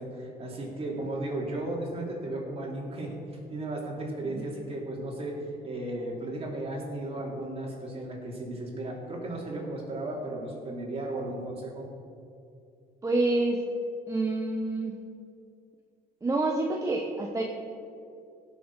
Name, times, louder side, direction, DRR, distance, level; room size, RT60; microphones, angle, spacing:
voice 1, 0.0-11.9, right 1 dB, 35° right, -2 dB, 3.0 m, -35 dB
voice 2, 13.0-13.6 14.1-15.0 16.2-17.4, right 2 dB, 20° right, 0 dB, 1.0 m, -27 dB
17.0 x 6.6 x 4.8 m, 2.5 s
cardioid pair, 110°, 17 cm